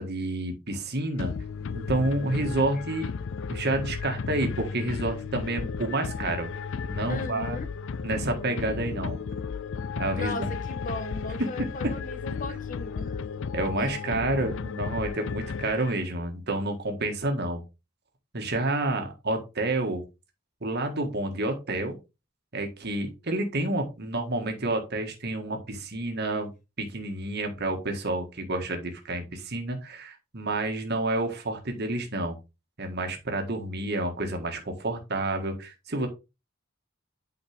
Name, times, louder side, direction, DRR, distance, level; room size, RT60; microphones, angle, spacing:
voice 1, 0.0-1.3 1.7-3.1 3.5-6.5 6.8-7.6 8.0-9.2 10.0-10.5 11.4-11.5 13.5-17.6 18.3-20.0 20.6-21.9 22.5-26.5 26.8-32.4 32.8-36.1, right 2 dB, 50° right, 1.6 m, -29 dB
sound 1, 1.2-16.2, left 5 dB, 60° left, 0.4 m, -34 dB
voice 2, 7.1-7.7 10.2-13.2 13.8-13.9, left 2 dB, 40° left, 1.3 m, -37 dB
8.5 x 5.1 x 3.4 m
head